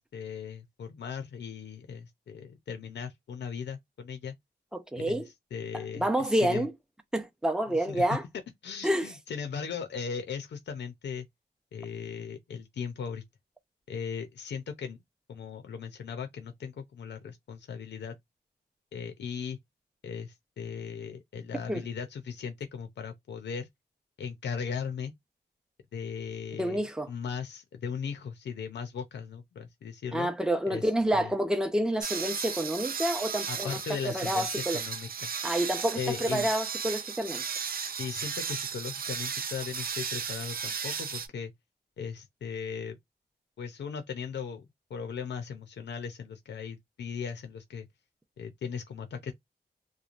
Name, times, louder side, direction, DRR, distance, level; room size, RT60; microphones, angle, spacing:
voice 1, 0.0-4.3 5.0-5.2 5.5-6.7 7.7-8.2 8.6-11.3 11.7-13.2 13.9-15.0 15.3-18.2 18.9-19.6 20.0-23.7 24.2-25.1 25.9-30.3 30.7-31.3 33.5-35.3 35.9-36.5 38.0-41.5 42.0-43.0 43.6-47.9 48.4-49.3, left 6 dB, 80° left, 0.5 m, -38 dB
voice 2, 4.7-5.3 5.9-6.7 7.1-8.2 8.8-9.1 21.7-21.8 26.6-27.1 30.1-33.8 34.0-34.8 35.4-37.4, right 1 dB, 5° right, 0.6 m, -28 dB
sound 1, 32.0-41.3, right 6 dB, 55° right, 0.4 m, -35 dB
3.0 x 2.1 x 2.4 m
wide cardioid pair, 95°, 18 cm